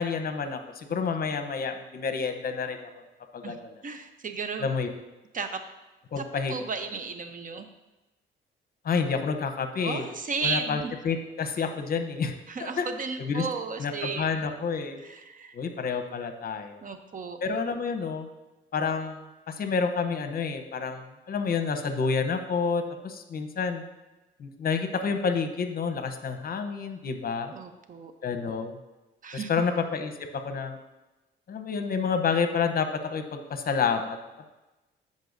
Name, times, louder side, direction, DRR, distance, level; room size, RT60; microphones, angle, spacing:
voice 1, 0.0-2.9 3.3-3.7 4.6-4.9 6.1-6.7 8.8-10.1 10.4-12.3 12.6-12.9 13.2-13.5 13.8-15.0 15.5-16.8 17.4-18.3 18.7-23.8 24.4-27.5 28.2-28.8 29.3-30.8 31.5-34.4, left 5 dB, 50° left, 7 dB, 0.8 m, -29 dB
voice 2, 3.8-4.7 5.3-5.6 6.2-7.7 9.8-10.9 12.5-14.5 15.0-15.6 16.8-17.4 27.5-28.1 29.2-29.5, right 4 dB, 40° right, 8 dB, 0.8 m, -34 dB
13.0 x 5.3 x 2.6 m, 1.1 s
cardioid pair, 90°, 20 cm